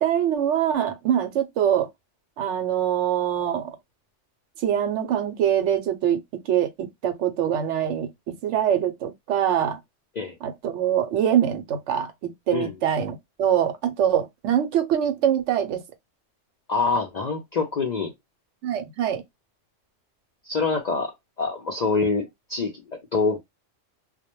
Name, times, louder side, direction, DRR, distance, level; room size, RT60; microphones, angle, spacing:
voice 1, 0.0-1.9 2.4-3.8 4.6-9.8 10.4-15.8 18.6-19.2, right 9 dB, 75° right, 0.9 m, -24 dB
voice 2, 16.7-18.1 20.4-23.4, left 4 dB, 60° left, 0.4 m, -26 dB
2.2 x 2.1 x 2.9 m
omnidirectional pair, 1.3 m